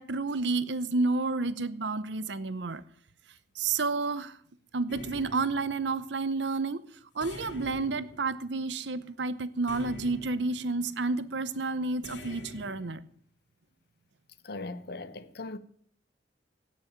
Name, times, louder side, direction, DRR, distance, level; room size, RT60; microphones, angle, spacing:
voice 1, 0.0-2.8 3.6-4.3 4.7-6.8 7.2-13.0, right 3 dB, 75° right, 0.8 m, -30 dB
sound 1, 4.9-6.2 7.2-8.9 9.7-10.8 12.0-12.9, left 1 dB, 80° left, 2.7 m, -45 dB
voice 2, 14.4-15.6, left 2 dB, 65° left, 1.1 m, -39 dB
17.5 x 6.3 x 9.0 m
head